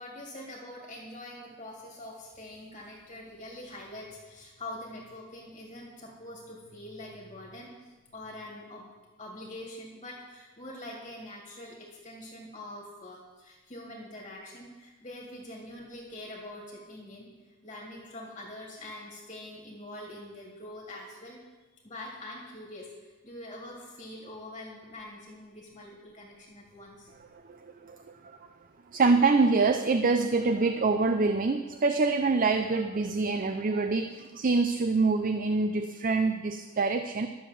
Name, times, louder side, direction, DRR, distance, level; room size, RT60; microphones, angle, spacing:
voice 1, 0.0-8.9 9.2-21.4 21.8-27.1, left 1 dB, 30° left, -2 dB, 2.2 m, -44 dB
voice 2, 27.3-28.0 28.2-28.5 28.9-37.3, right 3 dB, 40° right, 8 dB, 0.5 m, -25 dB
12.0 x 7.1 x 7.4 m, 1.3 s
head